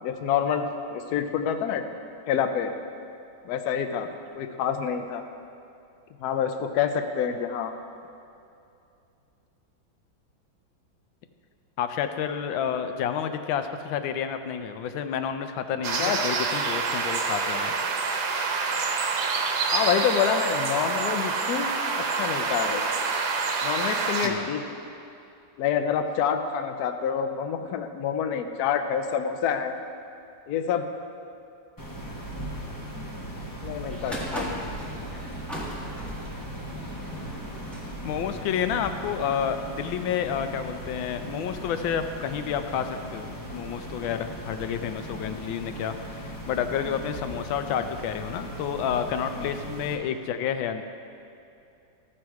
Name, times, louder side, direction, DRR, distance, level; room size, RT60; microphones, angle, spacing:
voice 1, 0.0-1.8 2.3-2.7 3.4-4.1 4.4-5.2 6.2-7.7 16.0-16.2 19.7-21.7 22.1-22.8 23.6-24.6 25.6-29.8 30.5-30.9 33.6-34.6 49.4-49.5, left 8 dB, 70° left, 7 dB, 1.0 m, -27 dB
voice 2, 11.8-17.7 24.2-24.5 38.0-50.8, left 8 dB, 85° left, 8 dB, 1.4 m, -30 dB
sound 1, 15.8-24.3, right 4 dB, 75° right, 1.5 m, -27 dB
sound 2, 31.8-49.9, equal, 20° left, 0.6 m, -38 dB
sound 3, 33.9-39.7, equal, ahead, 1.0 m, -39 dB
14.0 x 6.2 x 4.7 m, 2.6 s
omnidirectional pair, 2.1 m